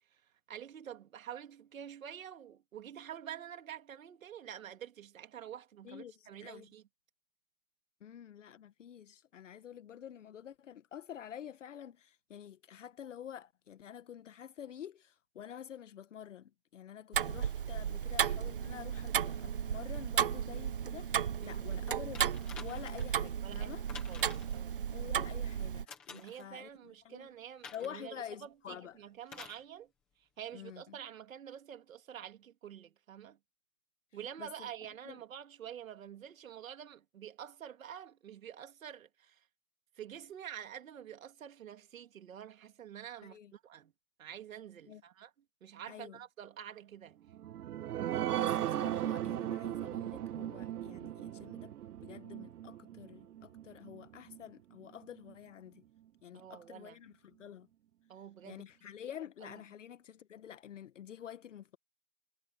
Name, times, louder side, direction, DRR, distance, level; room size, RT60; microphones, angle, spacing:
voice 1, 0.5-6.8 21.4-21.7 23.4-24.7 26.1-29.9 30.4-33.4 34.1-39.4 40.0-43.9 44.2-45.3 45.6-47.2 56.3-57.0 58.1-58.6 59.4-59.6, right 9 dB, 60° right, 2.6 m, -48 dB
voice 2, 5.8-6.7 8.0-23.8 24.9-27.3 27.7-29.0 30.5-31.0 34.4-34.7 35.0-35.2 43.2-43.5 44.9-45.0 45.9-46.2 48.4-51.7 52.0-55.8 56.2-57.7 58.4-61.8, left 9 dB, 55° left, 1.2 m, -49 dB
Tick-tock, 17.1-25.8, right 8 dB, 35° right, 0.7 m, -34 dB
sound 1, 22.1-23.1 23.9-24.6 25.9-26.5 27.6-28.0 29.3-29.6 30.7-30.8, left 5 dB, 5° left, 0.7 m, -50 dB
sound 2, 47.3-54.4 54.8-54.9 55.3-55.4, right 12 dB, 80° right, 0.7 m, -37 dB
hypercardioid pair, 175°, 45 cm